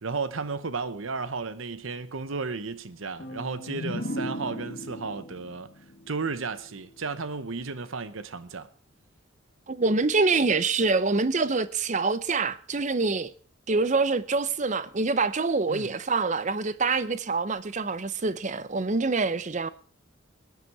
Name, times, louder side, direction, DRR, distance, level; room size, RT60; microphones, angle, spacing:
voice 1, 0.0-5.7 6.1-8.7 15.7-16.0, right 4 dB, 75° right, 0.9 m, -33 dB
sound 1, 3.2-6.9, left 1 dB, 45° left, 1.6 m, -37 dB
voice 2, 9.7-13.3 13.7-19.7, right 3 dB, 35° right, 0.7 m, -25 dB
20.5 x 9.3 x 4.7 m
head